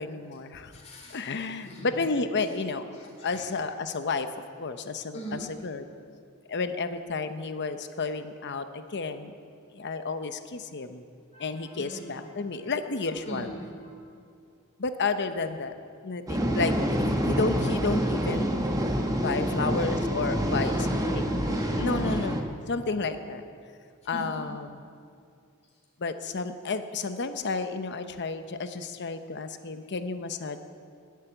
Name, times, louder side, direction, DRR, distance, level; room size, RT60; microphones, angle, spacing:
voice 1, 0.0-0.7 1.1-4.3 4.6-5.9 6.5-9.3 9.7-11.0 11.4-13.5 14.8-15.7 16.0-18.5 19.2-20.9 21.1-21.3 21.8-22.4 22.7-23.4 24.1-24.8 26.0-30.6, left 4 dB, 55° left, 9 dB, 0.8 m, -31 dB
voice 2, 0.7-2.0 2.9-3.5 5.1-5.5 11.3-12.3 13.2-13.9 19.4-19.9 20.5-22.1 24.1-24.3, right 1 dB, 30° left, -5 dB, 3.1 m, -40 dB
sound 1, 16.3-22.4, equal, 15° right, 1.0 m, -27 dB
13.0 x 8.4 x 9.1 m, 2.3 s
head